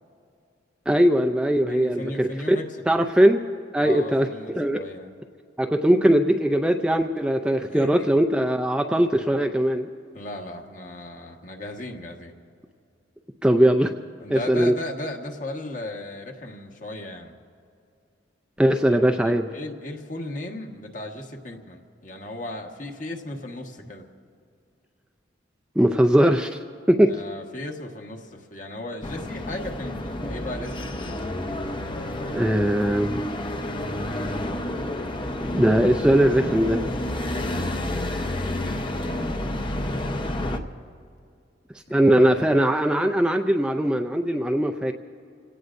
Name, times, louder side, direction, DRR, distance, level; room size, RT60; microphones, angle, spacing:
voice 1, 0.9-2.6 2.9-3.4 3.7-4.3 4.6-4.8 5.6-9.9 13.4-13.9 14.3-14.7 18.6-19.5 25.8-26.6 26.9-27.2 32.3-33.2 35.4-36.8 41.9-44.9, right 1 dB, 5° right, 4 dB, 0.4 m, -20 dB
voice 2, 1.7-2.8 3.8-5.1 7.7-8.1 10.1-12.3 14.2-17.3 18.8-24.0 27.1-31.2 41.9-42.1, left 1 dB, 45° left, 2 dB, 1.4 m, -36 dB
sound 1, 29.0-40.6, left 1 dB, 25° left, 0.8 m, -29 dB
28.0 x 17.5 x 2.6 m, 2.5 s
head